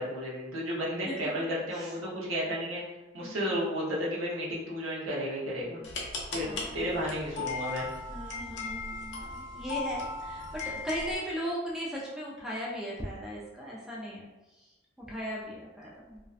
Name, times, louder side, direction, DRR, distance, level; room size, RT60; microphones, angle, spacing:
voice 1, 0.0-2.8 3.1-5.8 6.3-6.5 6.7-7.9, equal, 80° right, -5 dB, 0.7 m, -32 dB
voice 2, 1.1-1.4 1.7-1.9 3.2-3.6 5.8-5.9 6.4-7.0 7.6-7.8 8.1-16.2, equal, ahead, -5 dB, 0.4 m, -38 dB
sound 1, 5.8-11.2, left 3 dB, 60° left, 0.5 m, -37 dB
2.5 x 2.1 x 2.4 m, 1.1 s
head